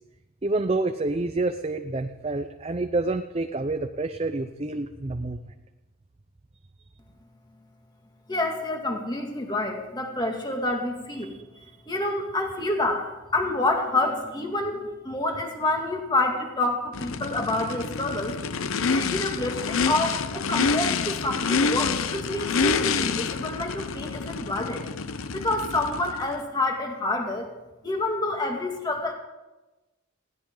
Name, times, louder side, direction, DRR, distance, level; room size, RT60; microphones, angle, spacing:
voice 1, 0.4-5.5, right 2 dB, 30° right, 7 dB, 0.6 m, -28 dB
voice 2, 8.3-11.4 11.9-18.4 18.9-24.9 25.3-27.5 27.8-29.1, left 2 dB, 20° left, 2 dB, 2.2 m, -28 dB
Race car auto racing / Idling / Accelerating revving vroom, 16.9-26.4, left 5 dB, 80° left, 0.7 m, -27 dB
20.0 x 16.5 x 3.9 m, 1.1 s
head